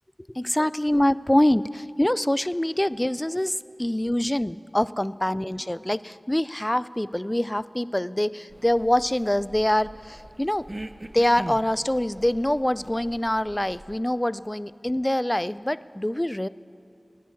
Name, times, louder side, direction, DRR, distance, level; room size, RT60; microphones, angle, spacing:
voice 1, 0.3-10.6 11.1-16.5, left 1 dB, 20° left, 18 dB, 0.4 m, -25 dB
sound 1, 8.5-14.0, right 1 dB, 30° right, 0.6 m, -42 dB
15.0 x 10.0 x 9.6 m, 2.6 s
wide cardioid pair, 40°, 0 cm